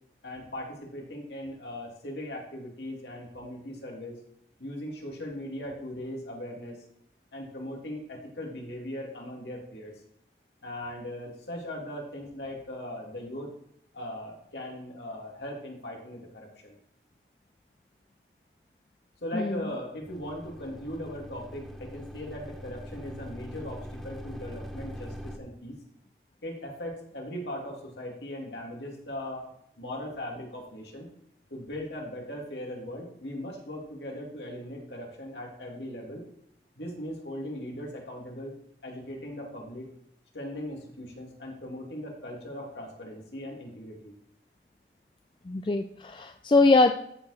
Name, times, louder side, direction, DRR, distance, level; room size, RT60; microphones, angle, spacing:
voice 1, 0.2-4.2 4.6-6.8 7.3-9.9 10.6-13.5 13.9-16.8 19.2-25.8 26.4-29.4 29.8-31.1 31.5-36.2 36.8-38.6 38.8-39.9 40.3-44.1, left 1 dB, 80° left, -1 dB, 2.3 m, -39 dB
sound 1, 20.1-25.4, equal, ahead, 0.8 m, -42 dB
voice 2, 45.5-46.9, left 3 dB, 25° left, 6 dB, 0.3 m, -22 dB
13.5 x 4.8 x 4.1 m, 0.72 s
head